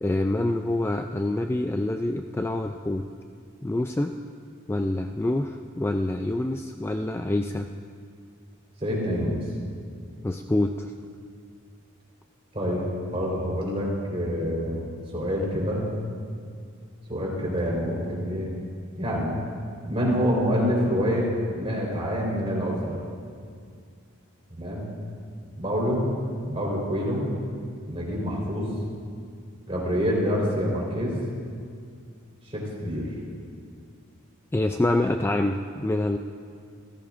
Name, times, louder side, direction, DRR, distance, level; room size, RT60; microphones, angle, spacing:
voice 1, 0.0-3.1 3.6-4.1 4.7-7.7 10.2-10.9 34.5-36.2, left 1 dB, 10° left, 5 dB, 0.3 m, -26 dB
voice 2, 8.8-9.4 12.5-15.9 17.1-18.5 19.0-19.4 19.9-21.3 21.6-23.0 24.5-24.9 25.6-26.1 26.5-27.3 27.9-28.7 29.7-31.2 32.5-33.1, equal, 30° right, -3 dB, 4.1 m, -26 dB
27.5 x 16.0 x 2.5 m, 2.2 s
head